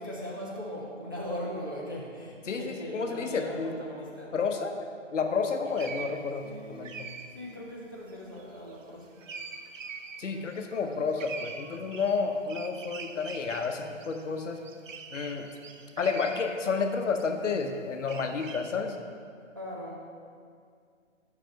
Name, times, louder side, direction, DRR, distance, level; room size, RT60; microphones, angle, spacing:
voice 1, 0.0-4.3 6.4-7.0 7.3-9.2 19.5-20.0, equal, 20° right, -6 dB, 0.4 m, -39 dB
voice 2, 2.5-3.7 4.3-4.9 5.1-6.4 6.7-6.9 10.2-14.6 15.1-15.5 16.0-19.0, left 5 dB, 70° left, 5 dB, 0.9 m, -30 dB
sound 1, 5.7-17.6 18.0-18.8, right 5 dB, 80° right, 0.7 m, -44 dB
5.7 x 5.0 x 6.2 m, 2.2 s
hypercardioid pair, 160°, 38 cm